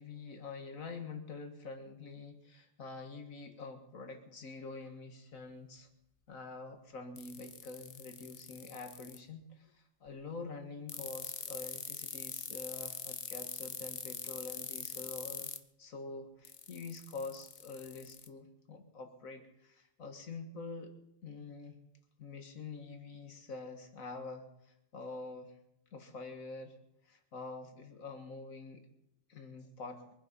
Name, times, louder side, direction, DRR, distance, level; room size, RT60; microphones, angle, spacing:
voice 1, 0.0-5.9 6.3-15.5 15.8-20.9 21.2-21.8 22.2-25.6 25.9-26.8 27.1-28.9 29.3-30.1, left 3 dB, 85° left, 6 dB, 2.1 m, -46 dB
sound 1, 7.2-9.2 10.9-15.6 16.5-18.3, left 7 dB, 60° left, 1.2 m, -42 dB
23.5 x 9.7 x 5.5 m, 0.79 s
omnidirectional pair, 1.4 m